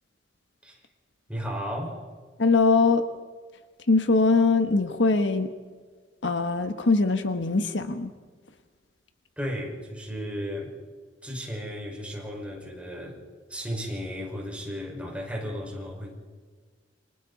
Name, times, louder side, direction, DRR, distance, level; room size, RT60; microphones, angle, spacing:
voice 1, 1.3-2.0 9.4-10.7 11.2-13.2 13.5-16.1, equal, 5° right, -1 dB, 5.5 m, -34 dB
voice 2, 2.4-3.1 3.9-5.5 6.2-8.1, left 3 dB, 75° left, 8 dB, 1.4 m, -22 dB
29.0 x 25.5 x 4.2 m, 1.5 s
head